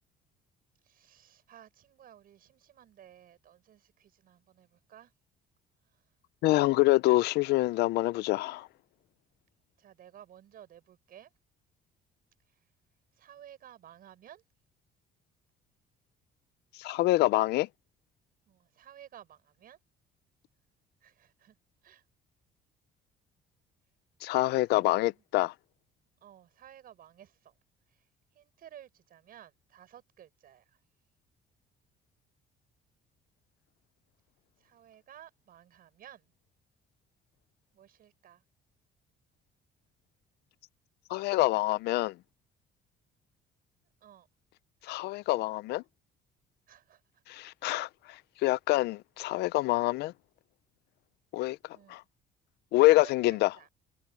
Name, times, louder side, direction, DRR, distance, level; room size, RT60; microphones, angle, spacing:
voice 1, 0.8-5.1 9.8-11.3 13.2-14.4 18.5-19.8 21.0-21.5 21.8-22.0 24.7-25.2 26.2-27.5 28.3-30.7 34.6-36.2 37.7-38.4 44.0-44.3 46.7-47.0 47.6-47.8 51.7-52.0 52.9-53.7, right 10 dB, 60° right, 6.7 m, -54 dB
voice 2, 6.4-8.7 16.8-17.7 24.2-25.5 41.1-42.1 44.9-45.8 47.3-47.9 48.4-50.1 51.3-51.6 51.9-52.0 52.7-53.5, left 18 dB, 80° left, 0.5 m, -26 dB
cardioid pair, 110°, 17 cm